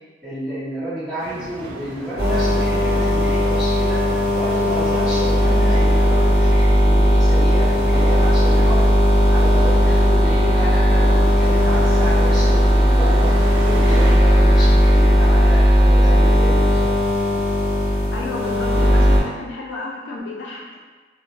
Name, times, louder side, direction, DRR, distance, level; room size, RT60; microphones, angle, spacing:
voice 1, 0.2-4.1 4.3-9.0 9.3-17.1, right 1 dB, ahead, -14 dB, 1.1 m, -30 dB
sound 1, 1.2-14.2, right 3 dB, 80° right, 0.3 m, -35 dB
sound 2, 2.2-19.2, equal, 30° left, 1.2 m, -16 dB
voice 2, 18.1-20.8, left 2 dB, 70° left, -3 dB, 0.4 m, -31 dB
2.5 x 2.0 x 3.1 m, 1.4 s
head